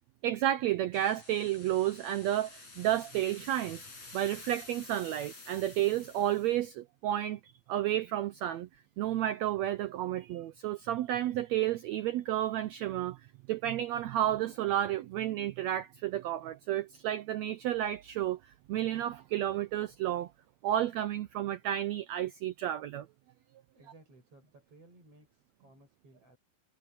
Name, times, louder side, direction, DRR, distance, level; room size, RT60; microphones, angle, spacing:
voice 1, 0.2-3.8 4.1-7.4 7.7-8.7 9.0-13.2 13.5-18.4 18.7-20.3 20.6-23.1, right 12 dB, 85° right, 1.5 m, -31 dB
sound 1, 0.9-6.6, left 3 dB, 50° left, 9.2 m, -50 dB
voice 2, 23.7-26.4, right 2 dB, 45° right, 9.0 m, -59 dB
omnidirectional pair, 3.9 m